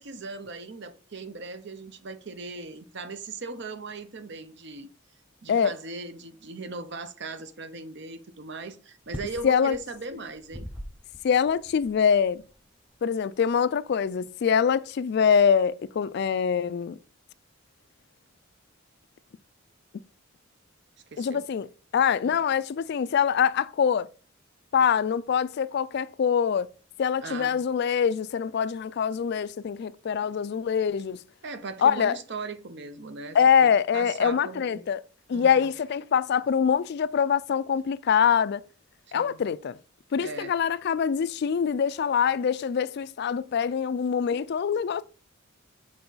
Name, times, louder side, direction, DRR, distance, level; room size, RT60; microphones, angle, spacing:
voice 1, 0.0-4.9 5.4-10.7 21.1-21.5 27.2-27.6 31.4-34.8 35.3-35.7 39.1-39.4 40.2-40.5, right 3 dB, 60° right, 0.8 m, -39 dB
sound 1, 9.0-14.6, equal, 5° right, 0.8 m, -44 dB
voice 2, 9.4-9.8 11.2-12.4 13.0-17.0 21.2-21.7 21.9-24.1 24.7-26.7 27.0-31.2 31.8-32.2 33.3-35.0 35.3-38.6 39.1-39.8 40.1-45.0, left 7 dB, 55° left, 0.3 m, -24 dB
6.8 x 4.6 x 3.9 m
head